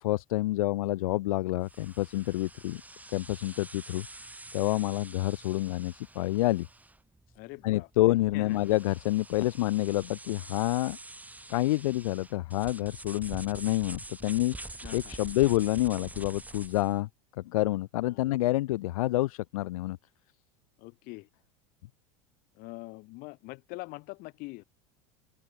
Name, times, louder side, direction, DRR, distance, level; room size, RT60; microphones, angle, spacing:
voice 1, 0.0-2.8 3.1-4.1 4.5-6.7 7.6-11.0 11.5-17.1 17.4-20.0, left 17 dB, 75° left, 0.8 m, -28 dB
sound 1, 1.6-17.0, right 2 dB, 10° right, 5.2 m, -47 dB
voice 2, 7.4-7.9 8.3-8.6 14.8-15.3 18.1-18.3 20.8-21.3 22.6-24.6, left 24 dB, 55° left, 1.9 m, -43 dB
open air
hypercardioid pair, 90°, 18 cm